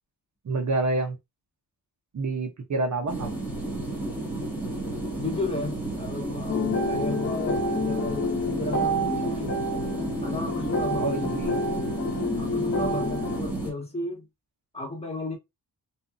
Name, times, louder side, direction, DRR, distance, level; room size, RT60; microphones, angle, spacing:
voice 1, 0.4-1.2 2.1-3.4 11.0-11.5, right 2 dB, 45° right, 1.0 m, -28 dB
sound 1, 3.1-13.7, right 2 dB, 5° right, 1.2 m, -32 dB
voice 2, 5.2-9.6 10.2-11.4 11.7-11.9 12.4-14.3 14.7-15.4, left 2 dB, 15° left, 1.2 m, -34 dB
sound 2, 6.5-13.4, left 1 dB, 40° left, 1.0 m, -28 dB
2.7 x 2.5 x 2.4 m
cardioid pair, 100°, 41 cm